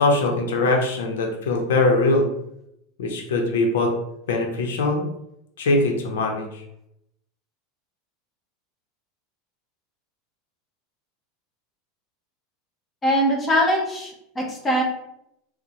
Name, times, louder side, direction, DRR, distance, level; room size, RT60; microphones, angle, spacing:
voice 1, 0.0-2.3 3.0-3.9 4.3-5.0 5.6-6.6, left 2 dB, 90° left, 2 dB, 0.7 m, -21 dB
voice 2, 13.0-14.8, equal, 20° left, 0 dB, 0.8 m, -22 dB
4.1 x 2.1 x 2.9 m, 0.78 s
supercardioid pair, 135°, 0 cm